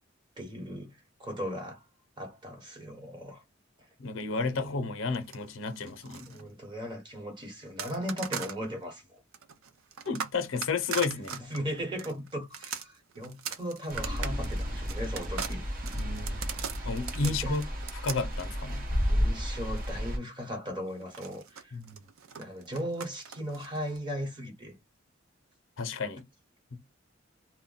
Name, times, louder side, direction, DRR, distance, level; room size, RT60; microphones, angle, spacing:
voice 1, 0.4-0.9 1.2-1.8 2.2-3.4 4.4-4.6 6.3-9.2 11.5-15.6 17.2-17.6 19.0-21.8 22.4-24.8, equal, 25° right, 0.9 m, -37 dB
voice 2, 4.0-6.5 10.0-11.3 15.9-16.6 16.8-17.6 18.0-18.9 21.7-22.0 25.8-26.2 26.7-26.8, left 4 dB, 75° left, 0.6 m, -32 dB
sound 1, 5.1-6.4 7.8-8.6 9.3-19.9 21.0-24.0, right 7 dB, 90° right, 0.5 m, -40 dB
sound 2, 13.9-20.2, equal, 45° right, 0.8 m, -32 dB
2.2 x 2.0 x 3.8 m
head